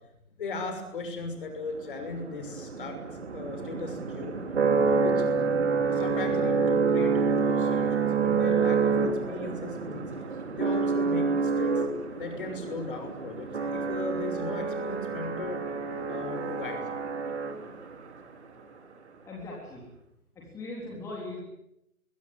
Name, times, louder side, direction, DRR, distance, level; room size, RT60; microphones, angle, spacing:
voice 1, 0.4-3.0 3.3-4.4 4.8-5.2 5.9-11.8 12.2-15.6 16.1-17.0, left 3 dB, 35° left, 6 dB, 6.3 m, -37 dB
sound 1, 1.7-18.0, right 5 dB, 45° right, 3.6 m, -28 dB
voice 2, 19.3-19.8 20.4-21.4, left 2 dB, 5° left, -3 dB, 3.7 m, -39 dB
26.0 x 22.5 x 9.6 m, 0.84 s
figure-of-eight pair, 150°, 44 cm